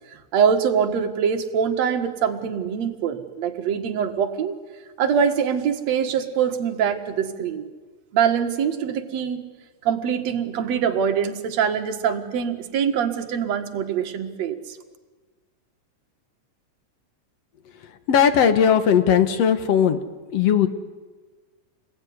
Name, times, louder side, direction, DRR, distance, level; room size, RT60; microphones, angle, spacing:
voice 1, 0.1-4.6 5.0-7.7 8.1-9.4 9.8-14.8, right 7 dB, 55° right, 5 dB, 2.7 m, -23 dB
voice 2, 18.1-20.0 20.3-20.7, left 8 dB, 55° left, 10 dB, 2.2 m, -18 dB
28.5 x 21.0 x 9.7 m, 1.4 s
omnidirectional pair, 3.9 m